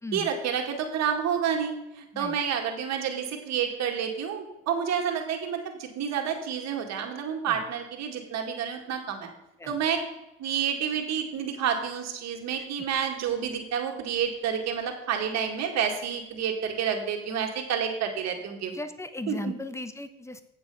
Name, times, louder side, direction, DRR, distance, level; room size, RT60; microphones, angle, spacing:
voice 1, 0.1-9.3 9.7-10.0 10.4-18.7 19.3-19.5, right 8 dB, 60° right, 3 dB, 2.1 m, -29 dB
voice 2, 18.7-20.4, left 1 dB, 10° left, 10 dB, 1.0 m, -37 dB
8.7 x 7.4 x 5.5 m, 0.91 s
supercardioid pair, 80°, 30 cm